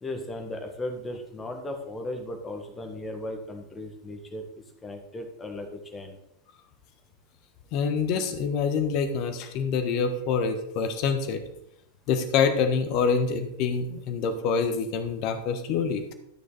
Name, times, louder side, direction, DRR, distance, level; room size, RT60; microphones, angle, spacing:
voice 1, 0.0-4.4 4.8-6.2, left 1 dB, 15° left, 4 dB, 1.7 m, -36 dB
voice 2, 7.7-11.4 12.1-16.1, left 5 dB, 40° left, 8 dB, 1.3 m, -26 dB
12.5 x 6.5 x 3.9 m, 0.81 s
figure-of-eight pair, 90°, 0 cm